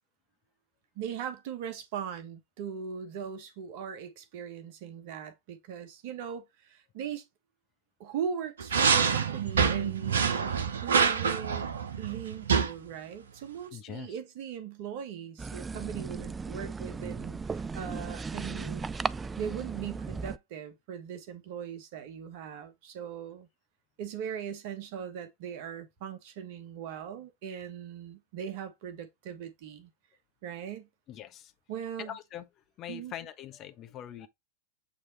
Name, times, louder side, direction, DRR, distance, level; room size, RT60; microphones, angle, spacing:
voice 1, 0.9-7.2 8.0-18.8 19.3-23.5 24.0-29.9 30.4-30.9 31.7-32.1 32.9-33.1, right 8 dB, 50° right, 1.3 m, -39 dB
sound 1, 8.6-12.7, right 6 dB, 65° right, 0.8 m, -26 dB
voice 2, 13.7-14.1 31.1-31.5 32.0-32.5 32.8-34.3, left 11 dB, 35° left, 1.1 m, -42 dB
sound 2, 15.4-20.4, right 4 dB, 15° right, 0.3 m, -36 dB
8.2 x 3.3 x 4.2 m
figure-of-eight pair, 90°, 0 cm